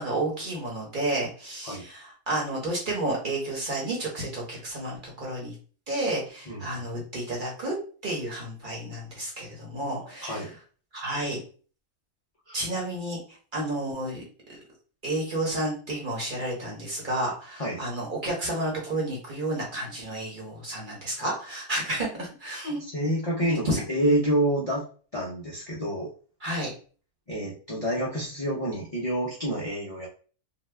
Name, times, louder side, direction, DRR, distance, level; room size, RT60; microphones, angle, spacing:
voice 1, 0.0-5.5 5.9-7.7 8.0-10.5 10.9-11.4 12.5-13.2 13.5-14.2 15.0-22.8 23.5-23.8 26.4-26.7, right 1 dB, 40° right, -3 dB, 0.9 m, -31 dB
voice 2, 6.5-6.8 10.0-10.5 12.5-12.6 17.6-17.8 22.8-24.9 25.1-26.1 27.3-30.1, right 1 dB, 70° left, -5 dB, 0.3 m, -28 dB
2.8 x 2.2 x 3.2 m, 0.40 s
omnidirectional pair, 1.6 m